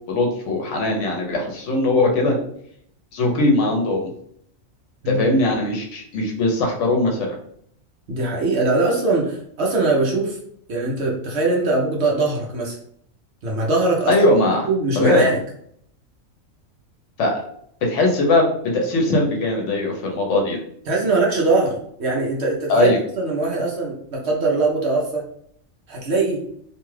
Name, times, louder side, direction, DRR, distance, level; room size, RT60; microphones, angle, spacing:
voice 1, 0.1-2.4 3.1-4.1 5.1-7.2 14.1-14.7 15.0-15.3 17.2-17.3 17.8-18.5 18.7-20.6 22.7-23.0, left 2 dB, 70° left, 1 dB, 0.9 m, -19 dB
voice 2, 8.1-10.4 10.7-12.8 13.4-14.2 14.7-15.4 20.9-25.2 25.9-26.4, right 2 dB, 60° right, -2 dB, 0.9 m, -21 dB
2.7 x 2.3 x 3.1 m, 0.67 s
omnidirectional pair, 1.4 m